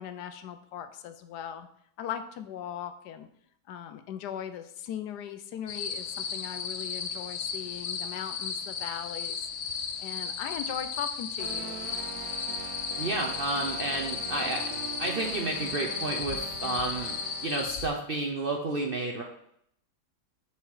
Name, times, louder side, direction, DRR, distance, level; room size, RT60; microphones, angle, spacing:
voice 1, 0.0-1.7 2.0-3.3 3.7-9.4 10.0-11.9, left 9 dB, 80° left, 9 dB, 1.2 m, -39 dB
sound 1, 5.7-17.9, left 6 dB, 60° left, 0.8 m, -35 dB
sound 2, 11.4-17.7, right 8 dB, 90° right, 1.3 m, -42 dB
voice 2, 13.0-14.6 15.0-17.2 17.4-19.2, right 2 dB, 55° right, 1 dB, 0.6 m, -31 dB
7.0 x 4.6 x 4.7 m, 0.70 s
omnidirectional pair, 1.8 m